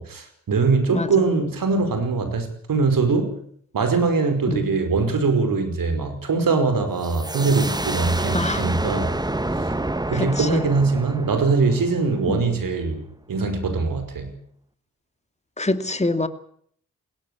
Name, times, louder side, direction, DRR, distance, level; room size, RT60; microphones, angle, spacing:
voice 1, 0.0-3.3 3.7-9.1 9.6-9.7 10.1-14.3, right 4 dB, 65° right, 5.3 m, -22 dB
sound 1, 7.0-12.6, right 2 dB, 10° right, 1.4 m, -28 dB
voice 2, 10.1-10.7 12.3-12.4 15.6-16.3, left 2 dB, 20° left, 2.4 m, -25 dB
21.5 x 17.5 x 8.4 m
supercardioid pair, 40°, 35 cm